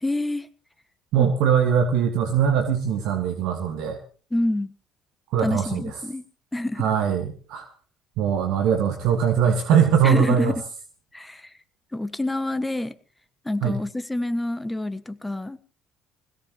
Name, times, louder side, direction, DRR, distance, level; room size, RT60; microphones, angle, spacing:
voice 1, 0.0-0.5 1.2-1.3 4.3-4.7 5.4-6.2 6.5-6.9 10.0-10.6 11.1-11.5 11.9-13.0 13.4-15.6, left 1 dB, 10° left, 1.3 m, -27 dB
voice 2, 1.1-4.0 5.3-5.8 6.8-7.7 8.2-10.5 13.6-13.8, right 7 dB, 65° right, 1.9 m, -21 dB
21.0 x 17.0 x 3.1 m
hypercardioid pair, 55°, 0 cm